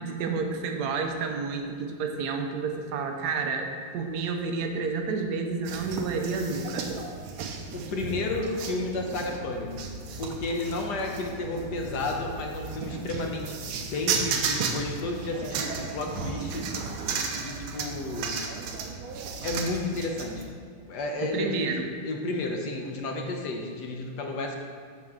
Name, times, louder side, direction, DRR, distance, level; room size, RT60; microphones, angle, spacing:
voice 1, 0.0-3.7 3.9-6.9 21.2-21.9, right 4 dB, 65° right, 4 dB, 1.0 m, -30 dB
sound 1, 5.7-20.4, right 5 dB, 80° right, 1.6 m, -34 dB
voice 2, 7.7-9.8 10.2-16.7 17.1-18.4 19.4-20.5 20.8-21.7 22.0-24.6, left 2 dB, 60° left, 1 dB, 1.3 m, -32 dB
12.5 x 4.6 x 3.7 m, 2.1 s
omnidirectional pair, 2.4 m